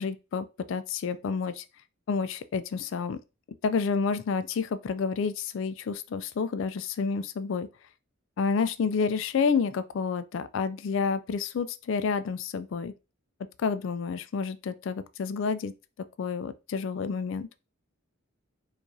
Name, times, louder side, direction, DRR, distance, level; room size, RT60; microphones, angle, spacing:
voice 1, 0.0-1.7 2.1-3.2 3.6-7.7 8.4-12.9 13.6-15.7 16.2-17.5, left 5 dB, 65° left, 0.3 m, -29 dB
4.6 x 2.4 x 2.7 m
head